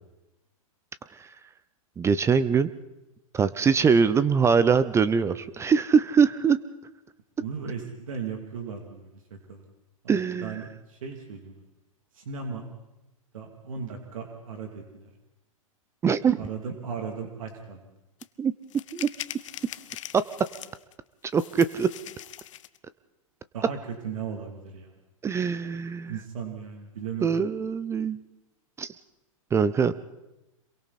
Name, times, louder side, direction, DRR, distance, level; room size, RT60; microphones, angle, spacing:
voice 1, 2.0-2.7 3.3-6.6 10.1-10.6 16.0-16.5 18.4-18.5 18.9-19.1 20.1-20.2 21.3-21.9 25.2-26.1 27.2-28.2 28.8-28.9 29.5-29.9, right 6 dB, 15° right, 15 dB, 0.7 m, -22 dB
voice 2, 7.4-9.6 10.0-11.6 12.1-12.7 13.3-15.1 16.4-17.8 23.5-23.8 24.0-24.9 26.1-27.3, right 6 dB, 70° right, 3 dB, 2.9 m, -37 dB
sound 1, 18.2-18.3 18.7-20.9 21.3-22.8, left 12 dB, 65° left, 0.9 m, -41 dB
27.0 x 23.0 x 4.3 m, 0.96 s
hypercardioid pair, 115°, 18 cm